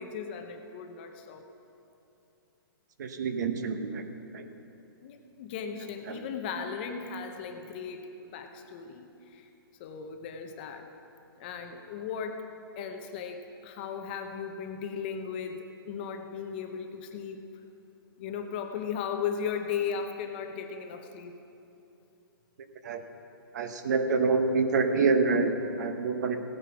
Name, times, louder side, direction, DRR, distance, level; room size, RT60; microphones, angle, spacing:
voice 1, 0.0-1.4 5.0-9.5 9.8-10.9 11.4-12.4 12.8-17.4 18.2-21.3, left 7 dB, 25° left, 5 dB, 0.7 m, -36 dB
voice 2, 3.0-4.1 4.3-4.5 6.1-6.3 22.8-23.0 23.5-26.4, right 4 dB, 50° right, 8 dB, 1.0 m, -27 dB
16.0 x 9.3 x 6.0 m, 2.8 s
hypercardioid pair, 170°, 12 cm